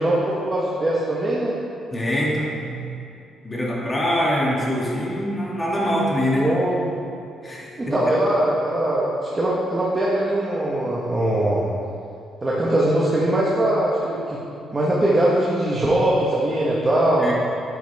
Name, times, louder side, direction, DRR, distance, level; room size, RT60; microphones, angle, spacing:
voice 1, 0.0-1.6 6.4-6.9 7.8-11.6 12.4-14.4 14.7-17.3, right 1 dB, 25° right, -6 dB, 1.6 m, -21 dB
voice 2, 1.9-3.0 3.4-6.5 7.4-8.1 17.2-17.3, equal, 20° left, -5 dB, 2.4 m, -24 dB
9.6 x 9.5 x 3.7 m, 2.6 s
cardioid pair, 90°, 0 cm